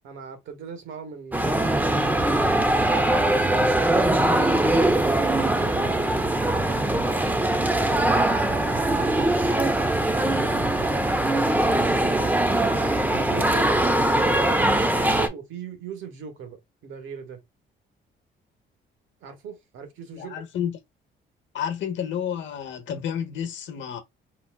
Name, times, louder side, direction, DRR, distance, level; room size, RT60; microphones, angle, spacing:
voice 1, 0.0-4.7 5.3-10.9 11.9-17.4 19.2-20.4, right 6 dB, 80° right, 1.0 m, -41 dB
sound 1, 1.3-15.3, right 1 dB, 10° right, 0.6 m, -22 dB
voice 2, 20.1-20.8 21.5-24.0, left 9 dB, 70° left, 0.9 m, -30 dB
3.9 x 2.2 x 2.3 m
cardioid pair, 90°, 20 cm